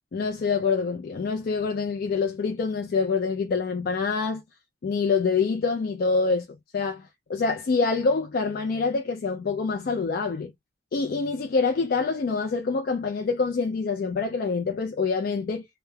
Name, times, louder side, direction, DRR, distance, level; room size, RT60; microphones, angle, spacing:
voice 1, 0.1-4.4 4.8-6.5 6.7-10.5 10.9-15.6, left 4 dB, 50° left, 0.4 m, -26 dB
3.0 x 2.0 x 2.2 m
head